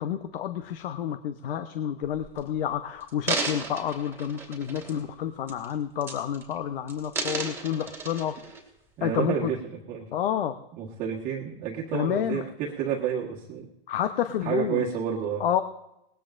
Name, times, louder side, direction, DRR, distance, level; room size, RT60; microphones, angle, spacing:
voice 1, 0.0-8.3 9.0-9.5 10.1-10.6 11.9-12.4 13.9-14.8 15.4-15.6, left 9 dB, 65° left, 9 dB, 1.0 m, -29 dB
sound 1, 2.0-2.4 3.0-5.1 5.5-5.7 6.0-6.6 6.9-8.6 9.2-9.3, right 3 dB, 10° right, 2.6 m, -33 dB
voice 2, 9.0-9.6 9.9-10.1 10.7-13.7 14.4-15.4, right 8 dB, 25° right, -3 dB, 1.5 m, -30 dB
21.0 x 19.0 x 2.6 m, 0.88 s
hypercardioid pair, 150°, 30 cm